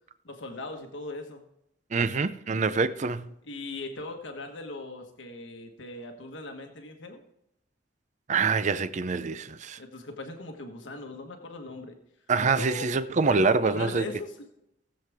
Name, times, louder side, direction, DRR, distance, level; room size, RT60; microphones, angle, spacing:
voice 1, 0.2-1.4 3.4-7.2 9.8-12.0 12.6-12.9 13.2-14.4, left 2 dB, 85° left, 1.3 m, -39 dB
voice 2, 1.9-3.3 8.3-9.8 12.3-14.1, right 4 dB, 40° right, 0.5 m, -25 dB
18.5 x 7.6 x 3.5 m
head